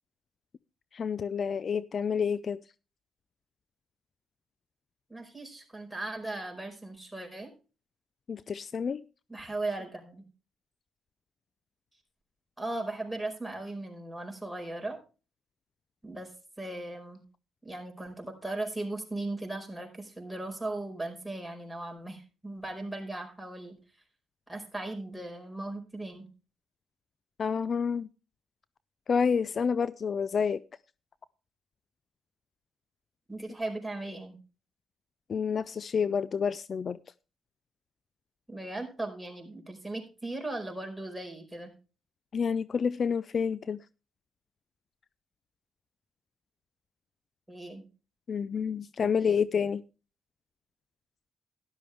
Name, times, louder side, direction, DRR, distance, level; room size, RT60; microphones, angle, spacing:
voice 1, 0.9-2.6 8.3-9.0 27.4-28.1 29.1-30.6 35.3-37.0 42.3-43.8 48.3-49.8, left 6 dB, 50° left, 0.4 m, -29 dB
voice 2, 5.1-7.5 9.3-10.2 12.6-15.0 16.0-16.3 16.6-17.2 17.6-23.8 24.5-26.3 33.3-34.4 38.5-41.7 47.5-47.8 49.0-49.6, right 2 dB, 5° right, 4.8 m, -38 dB
12.5 x 11.5 x 3.4 m
supercardioid pair, 55°, 0 cm